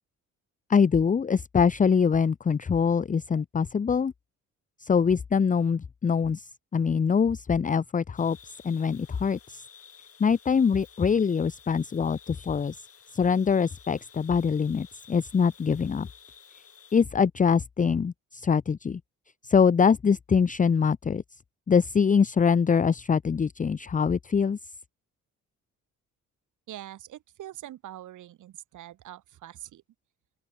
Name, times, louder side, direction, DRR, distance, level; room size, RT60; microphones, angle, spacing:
voice 1, 0.7-4.1 4.8-6.4 6.7-8.4 8.6-9.6 10.2-12.8 13.1-16.1 16.9-19.0 19.4-21.2 21.7-24.6, left 6 dB, 25° left, 0.7 m, -24 dB
sound 1, 8.2-17.0, left 7 dB, 50° left, 7.2 m, -53 dB
voice 2, 26.7-29.8, right 13 dB, 80° right, 6.3 m, -43 dB
open air
cardioid pair, 90°, 30 cm